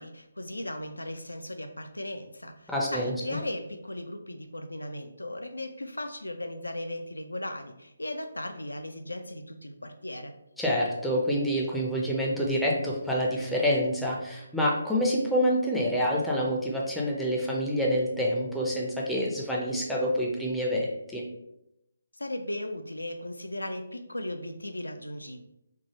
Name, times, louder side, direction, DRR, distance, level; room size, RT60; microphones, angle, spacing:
voice 1, 0.0-10.3 22.2-25.4, left 1 dB, 85° left, 7 dB, 0.3 m, -37 dB
voice 2, 2.7-3.2 10.6-21.2, equal, ahead, -4 dB, 0.4 m, -27 dB
3.2 x 2.0 x 2.9 m, 0.84 s
figure-of-eight pair, 145°, 0 cm